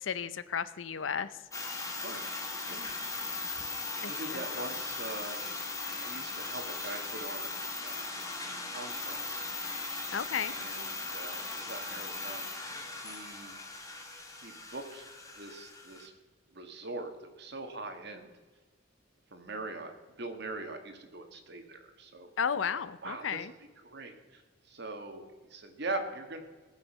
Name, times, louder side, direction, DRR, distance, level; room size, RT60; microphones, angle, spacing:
voice 1, 0.0-1.3 3.2-3.3 4.0-4.1 10.1-10.5 22.4-23.5, left 7 dB, 85° left, 15 dB, 0.6 m, -33 dB
sound 1, 1.5-16.1, left 3 dB, 20° left, 1.7 m, -38 dB
voice 2, 2.0-2.4 2.7-2.9 4.1-5.4 6.0-7.5 7.8-8.2 8.7-9.5 10.4-13.6 14.4-15.1 15.4-16.1 16.5-18.3 19.3-22.3 22.7-26.4, right 2 dB, 60° right, 6 dB, 1.7 m, -42 dB
19.5 x 7.1 x 5.5 m, 1.4 s
head